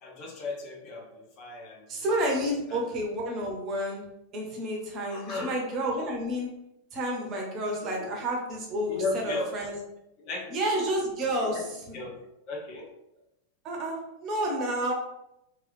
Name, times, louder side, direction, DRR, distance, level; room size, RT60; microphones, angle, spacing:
voice 1, 0.0-2.0 2.7-2.8 5.1-5.5 8.0-8.1 8.9-9.5 10.2-10.6 11.4-11.6 11.9-12.1 12.5-12.9, left 3 dB, 40° left, -1 dB, 0.8 m, -35 dB
voice 2, 1.9-4.0 4.3-6.5 6.9-9.8 10.5-12.0 13.6-14.9, right 1 dB, 35° right, -1 dB, 0.9 m, -30 dB
3.1 x 2.4 x 3.2 m, 0.85 s
figure-of-eight pair, 90°, 0 cm